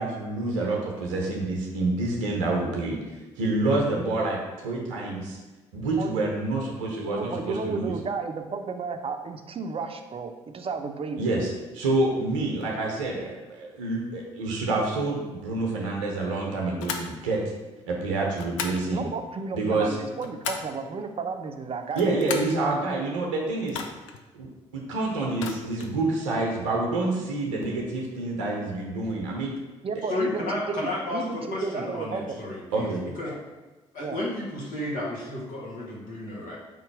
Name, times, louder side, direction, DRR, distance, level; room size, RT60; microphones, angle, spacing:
voice 1, 0.0-3.0 3.4-5.4 5.7-7.9 11.2-17.4 17.9-19.1 19.5-20.0 22.0-23.8 24.3-24.5 24.7-29.5 32.7-33.0, right 2 dB, 85° right, 0 dB, 0.6 m, -27 dB
voice 2, 7.0-11.2 18.9-22.0 29.8-32.2 34.0-34.2, right 4 dB, 35° right, 6 dB, 0.6 m, -33 dB
sound 1, 16.8-17.1 18.3-18.8 19.9-20.8 21.8-22.6 23.7-24.2 25.3-26.0, left 6 dB, 85° left, 0.4 m, -35 dB
voice 3, 30.1-33.3 33.9-36.6, left 2 dB, 60° left, -4 dB, 1.4 m, -32 dB
3.7 x 2.9 x 4.7 m, 1.2 s
hypercardioid pair, 50°, 16 cm